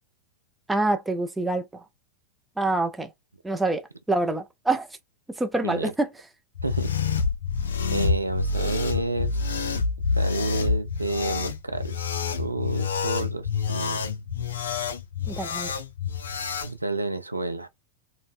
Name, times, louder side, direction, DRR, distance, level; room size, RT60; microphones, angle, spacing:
voice 1, 0.7-1.8 2.6-3.1 3.4-4.9 5.3-6.1 15.3-15.7, right 2 dB, 5° right, 0.5 m, -26 dB
sound 1, 6.6-16.7, left 5 dB, 65° left, 0.4 m, -27 dB
voice 2, 7.9-9.4 10.1-12.1 12.4-14.2 16.6-17.7, right 2 dB, 85° right, 0.3 m, -30 dB
3.9 x 2.1 x 2.4 m
figure-of-eight pair, 90°, 0 cm